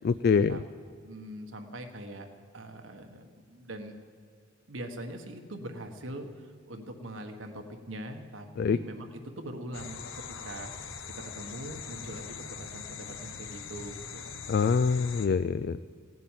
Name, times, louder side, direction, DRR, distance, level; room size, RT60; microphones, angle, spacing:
voice 1, 0.0-0.6 8.6-8.8 14.5-15.8, left 5 dB, 55° left, 14 dB, 0.3 m, -25 dB
voice 2, 1.0-2.3 2.5-3.9 4.7-10.7 11.2-14.2, right 1 dB, 80° right, 5 dB, 1.5 m, -42 dB
sound 1, 9.7-15.3, left 6 dB, 85° left, 1.0 m, -42 dB
16.5 x 8.0 x 9.3 m, 2.1 s
head